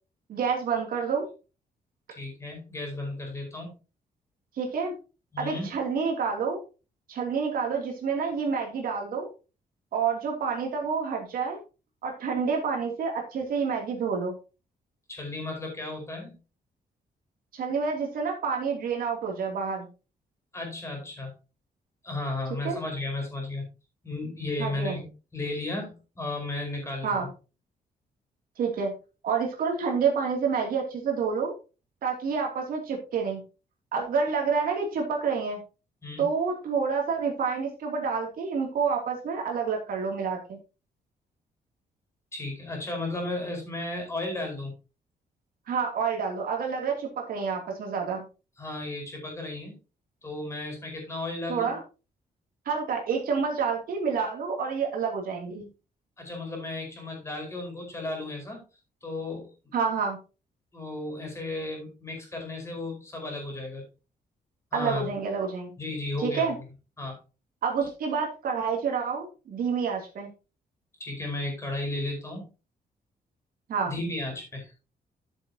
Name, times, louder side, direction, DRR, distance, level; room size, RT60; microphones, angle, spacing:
voice 1, 0.3-1.3 4.6-4.9 5.4-6.6 7.1-9.3 9.9-11.6 12.0-14.3 17.5-19.9 22.6-22.8 24.6-25.0 27.0-27.3 28.6-28.9 29.2-31.5 32.0-33.4 33.9-35.6 36.2-40.6 45.7-48.2 51.5-51.8 52.6-55.7 59.7-60.2 64.7-65.7 66.2-66.5 67.6-70.3 73.7-73.9, right 5 dB, 65° right, 1 dB, 2.8 m, -28 dB
voice 2, 2.1-3.7 5.3-5.8 15.1-16.3 20.5-21.3 22.0-23.7 24.0-27.3 36.0-36.2 42.3-44.7 48.6-49.7 50.2-51.8 56.2-58.6 59.0-59.5 60.7-63.8 64.7-65.1 65.8-66.6 67.0-67.2 71.0-72.5 73.8-74.7, left 2 dB, 15° left, 2 dB, 4.9 m, -34 dB
12.5 x 7.6 x 2.8 m, 0.31 s
wide cardioid pair, 170°, 16 cm